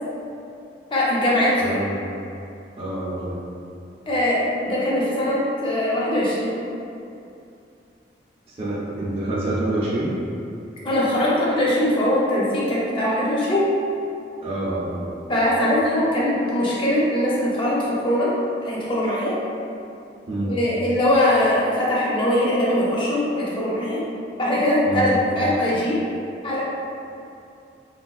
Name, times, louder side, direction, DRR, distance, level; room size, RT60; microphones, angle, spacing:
voice 1, 0.9-1.8 4.1-6.6 10.8-13.7 15.3-18.3 18.6-19.4 20.4-24.0 24.4-26.0 26.4-26.6, left 1 dB, 25° left, -7 dB, 0.5 m, -21 dB
voice 2, 1.6-2.2 2.8-3.4 8.5-10.1 14.4-15.1 20.3-20.6 24.9-25.2, right 1 dB, 30° right, -7 dB, 0.4 m, -27 dB
3.3 x 2.4 x 2.3 m, 2.6 s
head